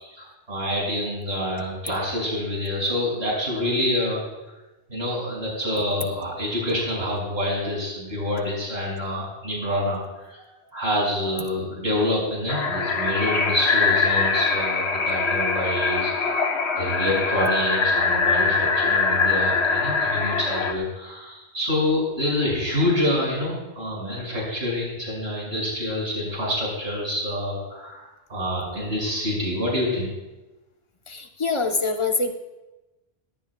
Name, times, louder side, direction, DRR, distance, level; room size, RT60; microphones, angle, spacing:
voice 1, 0.0-4.3 4.9-10.0 10.3-10.4 10.7-16.3 16.7-30.1, left 1 dB, 70° right, -4 dB, 6.5 m, -27 dB
sound 1, 12.5-20.7, left 4 dB, 75° left, 1.3 m, -23 dB
voice 2, 31.1-32.3, left 3 dB, 30° left, 4 dB, 1.0 m, -24 dB
19.0 x 17.5 x 2.3 m, 1.1 s
omnidirectional pair, 1.1 m